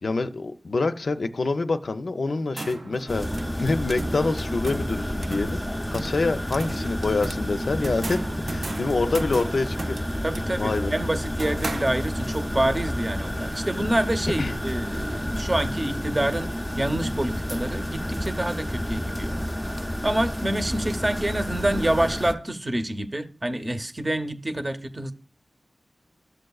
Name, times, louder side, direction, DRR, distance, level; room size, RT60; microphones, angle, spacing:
voice 1, 0.0-5.6 5.9-10.0 10.6-10.9 14.4-14.6, left 3 dB, 65° left, 0.5 m, -26 dB
sound 1, 2.3-12.4, right 2 dB, 60° right, 0.6 m, -37 dB
sound 2, 3.1-22.3, equal, 10° left, 0.6 m, -30 dB
voice 2, 10.2-19.4 19.6-25.1, right 1 dB, 30° right, 0.8 m, -27 dB
13.5 x 6.5 x 2.4 m
cardioid pair, 50°, 0 cm